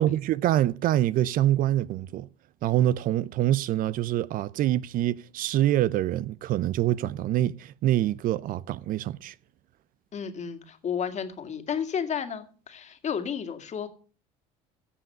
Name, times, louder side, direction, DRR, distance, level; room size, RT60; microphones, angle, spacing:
voice 1, 0.0-2.3 2.6-9.3, right 13 dB, 60° right, 0.6 m, -25 dB
voice 2, 10.1-13.9, left 7 dB, 45° left, 2.1 m, -32 dB
15.5 x 7.0 x 6.8 m
supercardioid pair, 80°, 17 cm